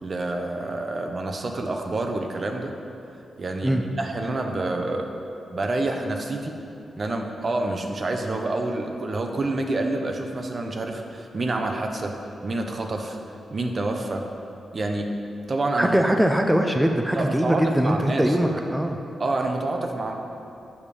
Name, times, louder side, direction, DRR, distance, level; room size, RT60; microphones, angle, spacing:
voice 1, 0.0-2.7 3.4-5.2 5.5-6.5 7.0-12.2 12.4-13.2 13.5-14.2 14.7-15.1 15.5-16.0 17.1-18.4 19.2-20.1, right 2 dB, 45° right, 3 dB, 0.7 m, -28 dB
voice 2, 15.8-19.0, equal, 5° right, 3 dB, 0.5 m, -21 dB
7.2 x 5.3 x 4.9 m, 2.7 s
cardioid pair, 70°, 0 cm